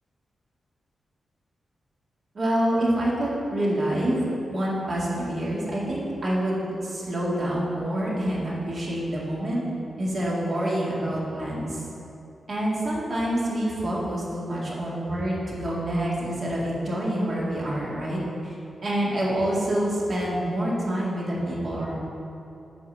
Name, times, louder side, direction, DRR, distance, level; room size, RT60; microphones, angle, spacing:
voice 1, 2.3-4.2 4.5-9.6 10.0-11.8 12.5-18.5 18.8-22.0, right 1 dB, 45° right, -5 dB, 2.1 m, -27 dB
9.6 x 4.6 x 6.8 m, 2.9 s
wide cardioid pair, 165°, 0 cm